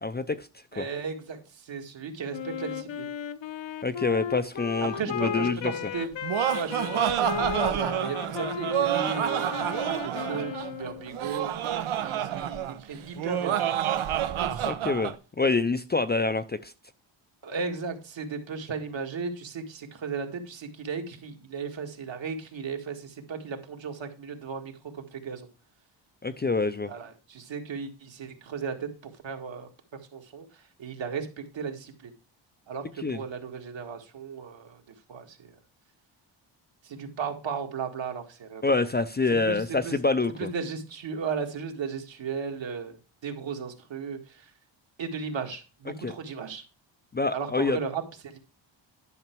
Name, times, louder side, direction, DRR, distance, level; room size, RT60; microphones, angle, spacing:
voice 1, 0.0-0.5 0.8-0.9 3.8-5.7 14.6-16.7 26.2-26.9 33.0-33.2 38.6-40.3 46.0-46.1 47.1-47.8, left 3 dB, 20° left, 0.5 m, -26 dB
voice 2, 0.7-3.1 4.9-6.1 6.4-11.5 12.0-13.6 14.4-14.7 17.4-25.5 26.9-32.1 32.7-34.8 35.1-35.6 36.8-38.6 39.4-40.0 40.4-43.0 43.2-44.5 45.0-46.6 47.3-48.4, right 5 dB, 60° right, 2.0 m, -35 dB
Wind instrument woodwind instrument, 2.3-11.2, left 9 dB, 60° left, 0.9 m, -35 dB
Laughter, 6.0-15.1, right 10 dB, 80° right, 1.1 m, -28 dB
11.0 x 5.7 x 4.5 m
cardioid pair, 95°, 50 cm